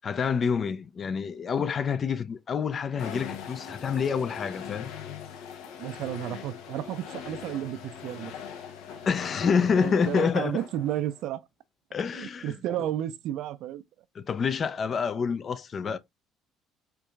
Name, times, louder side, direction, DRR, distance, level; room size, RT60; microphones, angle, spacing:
voice 1, 0.0-4.9 9.0-10.6 11.9-12.9 14.2-16.0, left 6 dB, 40° left, 0.4 m, -27 dB
sound 1, 3.0-11.2, left 7 dB, 80° left, 0.7 m, -41 dB
voice 2, 5.8-8.3 9.7-11.4 12.1-13.8, right 12 dB, 70° right, 0.4 m, -32 dB
4.5 x 2.5 x 2.3 m
cardioid pair, 105°, 0 cm